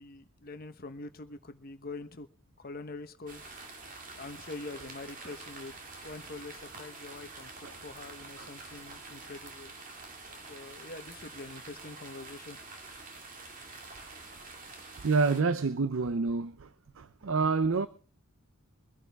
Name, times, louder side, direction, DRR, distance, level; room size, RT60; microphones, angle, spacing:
voice 1, 0.0-2.3 2.6-3.6 4.1-9.7 10.5-12.6, left 3 dB, 45° left, 1.1 m, -44 dB
sound 1, 3.3-15.4, right 3 dB, 40° right, 2.3 m, -47 dB
voice 2, 15.0-16.7 17.0-17.9, right 4 dB, 70° right, 0.6 m, -28 dB
23.0 x 11.0 x 3.5 m
head